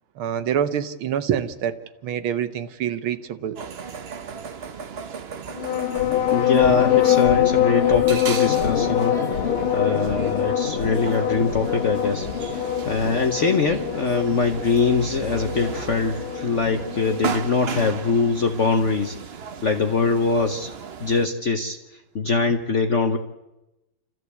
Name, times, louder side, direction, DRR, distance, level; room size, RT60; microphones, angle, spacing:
voice 1, 0.2-3.6, right 9 dB, 75° right, 12 dB, 1.8 m, -26 dB
sound 1, 3.6-21.3, right 6 dB, 55° right, 0.7 m, -36 dB
sound 2, 5.5-17.4, left 10 dB, 85° left, 2.5 m, -24 dB
voice 2, 6.3-19.2 19.6-20.7 21.0-21.8 22.1-23.2, left 4 dB, 50° left, 6 dB, 0.9 m, -23 dB
28.0 x 14.0 x 8.2 m, 0.99 s
omnidirectional pair, 2.3 m